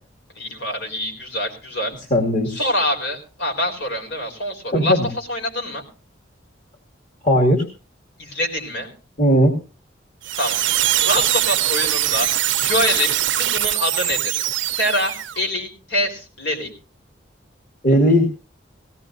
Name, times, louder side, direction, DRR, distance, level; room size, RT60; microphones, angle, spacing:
voice 1, 0.4-1.9 2.5-5.8 8.2-8.9 10.4-14.3 14.8-16.7, left 1 dB, 75° left, 2 dB, 4.3 m, -25 dB
voice 2, 2.1-2.6 4.7-5.1 7.2-7.6 9.2-9.5 17.8-18.3, equal, 45° left, 1 dB, 2.2 m, -16 dB
sound 1, 10.2-15.4, right 13 dB, 70° right, 0.7 m, -22 dB
19.0 x 16.5 x 2.6 m, 0.34 s
head